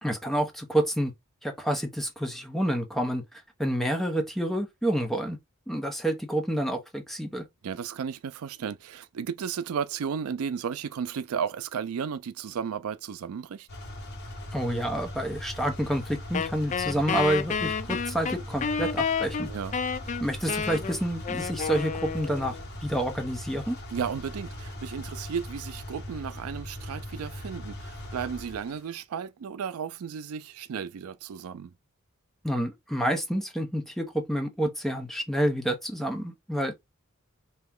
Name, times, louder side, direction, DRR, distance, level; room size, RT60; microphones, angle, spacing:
voice 1, 0.0-1.1 1.4-3.2 3.6-5.4 5.7-7.4 14.5-19.5 20.2-22.6 22.8-23.8 32.4-36.8, right 1 dB, ahead, 0.8 m, -28 dB
voice 2, 7.6-13.7 19.4-19.7 23.9-31.7, right 7 dB, 85° right, 0.4 m, -34 dB
sound 1, 13.7-28.8, left 1 dB, 50° left, 1.5 m, -40 dB
Wind instrument woodwind instrument, 16.3-22.6, left 6 dB, 35° left, 0.3 m, -30 dB
3.1 x 2.9 x 3.7 m
head